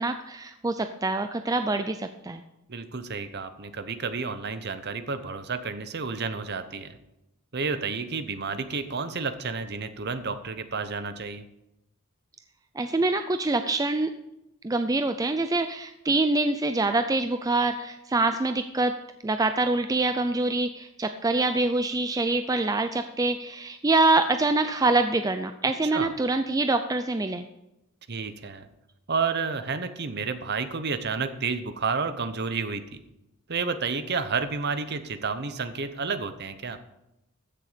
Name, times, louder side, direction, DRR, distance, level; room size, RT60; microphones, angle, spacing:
voice 1, 0.0-2.4 12.7-14.1 14.6-18.9 19.2-27.4, right 2 dB, 15° right, 8 dB, 0.4 m, -25 dB
voice 2, 2.7-7.0 7.5-11.5 25.8-26.1 28.1-28.7 29.1-33.0 33.5-36.8, right 5 dB, 50° right, 11 dB, 0.9 m, -31 dB
15.0 x 6.8 x 5.1 m, 0.89 s
head